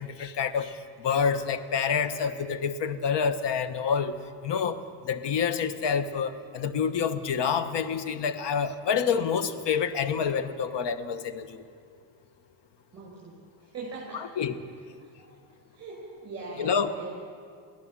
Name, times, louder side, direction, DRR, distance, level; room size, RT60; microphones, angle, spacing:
voice 1, 0.0-4.1 4.4-4.8 5.0-11.6 14.1-14.5 16.6-17.1, left 6 dB, 55° left, 12 dB, 1.5 m, -28 dB
voice 2, 12.9-14.2 15.0-15.4 15.7-17.1, right 3 dB, 30° right, -4 dB, 7.6 m, -41 dB
24.0 x 16.5 x 7.7 m, 2.3 s
cardioid pair, 105°, 49 cm